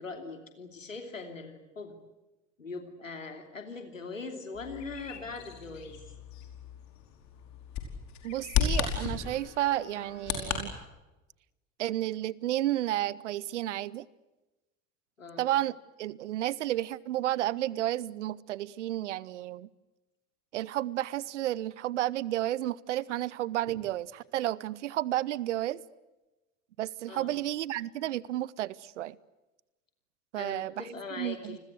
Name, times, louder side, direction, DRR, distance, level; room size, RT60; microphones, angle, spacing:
voice 1, 0.0-1.9 2.6-6.0 15.2-15.5 27.1-27.4 30.4-31.6, left 4 dB, 85° left, 6 dB, 3.1 m, -41 dB
Bird vocalization bird call bird song, 4.5-10.6, left 8 dB, 45° left, 5.1 m, -34 dB
voice 2, 8.2-10.8 11.8-14.1 15.4-19.7 20.5-25.8 26.8-29.2 30.3-31.6, right 14 dB, 70° right, 24 dB, 0.9 m, -32 dB
29.5 x 21.0 x 8.1 m, 1.1 s
figure-of-eight pair, 65°, 38 cm